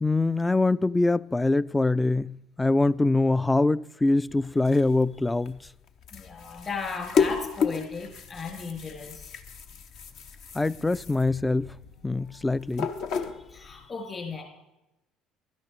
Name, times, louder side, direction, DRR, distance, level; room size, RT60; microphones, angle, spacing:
voice 1, 0.0-5.6 10.5-11.7 12.0-12.9, left 2 dB, 15° left, 0.3 m, -24 dB
sound 1, 4.3-13.9, left 6 dB, 60° left, 0.8 m, -33 dB
voice 2, 6.1-9.3 13.5-14.4, left 4 dB, 35° left, 3.6 m, -36 dB
12.0 x 10.5 x 4.8 m
hypercardioid pair, 60°, 0 cm